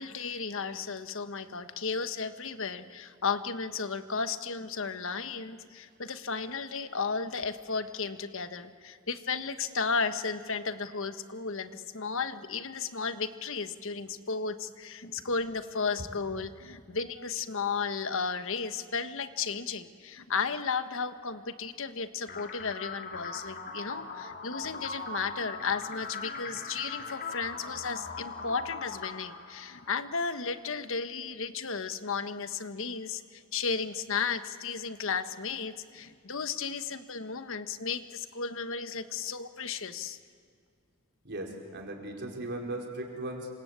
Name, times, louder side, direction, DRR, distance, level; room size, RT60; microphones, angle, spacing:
voice 1, 0.0-40.2, left 5 dB, 65° left, 11 dB, 1.3 m, -34 dB
sound 1, 22.3-30.3, left 4 dB, 50° left, 2.5 m, -40 dB
voice 2, 41.2-43.5, right 1 dB, 55° right, 1 dB, 4.6 m, -37 dB
28.0 x 26.0 x 8.3 m, 2.2 s
head